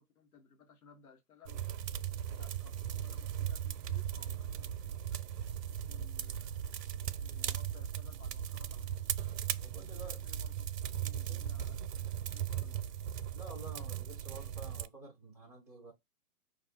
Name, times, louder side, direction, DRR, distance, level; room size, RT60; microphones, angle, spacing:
voice 1, 0.0-1.6 2.1-5.2 5.8-6.6 7.0-9.0 9.7-12.9, left 5 dB, 65° left, 1.1 m, -61 dB
sound 1, 1.5-14.9, right 10 dB, 90° right, 0.5 m, -38 dB
voice 2, 9.6-10.2 11.3-11.4 13.3-15.9, right 2 dB, 25° left, 0.5 m, -50 dB
2.6 x 2.4 x 3.3 m
hypercardioid pair, 175°, 47 cm